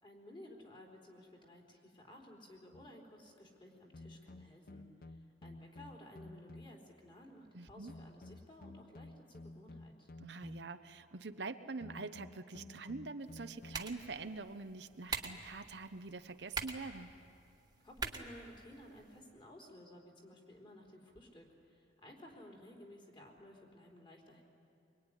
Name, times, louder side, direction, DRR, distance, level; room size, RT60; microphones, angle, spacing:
voice 1, 0.0-10.1 17.8-24.4, left 1 dB, 30° left, 0 dB, 4.2 m, -56 dB
sound 1, 2.7-3.0 3.9-6.9 7.9-10.9 11.8-14.0, left 2 dB, 55° left, 0.7 m, -53 dB
voice 2, 7.5-7.9 10.2-17.1, right 3 dB, 65° right, 10 dB, 0.8 m, -45 dB
sound 2, 13.2-19.2, right 4 dB, 20° right, 1.6 m, -46 dB
24.5 x 23.0 x 10.0 m, 2.6 s
head